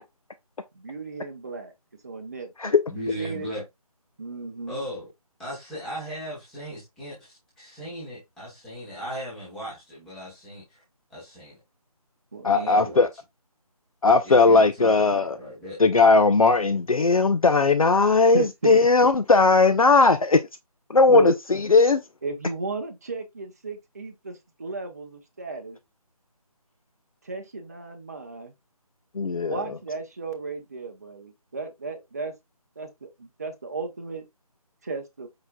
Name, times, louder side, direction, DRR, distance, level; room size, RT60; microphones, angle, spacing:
voice 1, 0.7-1.7 2.0-3.5 4.2-4.8 12.3-12.9 18.3-18.9 21.1-21.3 22.2-25.8 27.2-28.5 29.4-32.3 32.8-34.3 34.8-35.3, right 3 dB, 25° right, 0.6 m, -34 dB
voice 2, 2.9-3.6 4.7-5.1 5.4-10.8 11.1-11.6 12.5-13.1 14.2-15.8, equal, ahead, 1.0 m, -37 dB
voice 3, 12.4-13.1 14.0-15.4 15.8-20.4 20.9-21.3 21.7-22.0 29.1-29.6, left 3 dB, 65° left, 0.5 m, -18 dB
4.9 x 4.3 x 2.3 m
figure-of-eight pair, 155°, 19 cm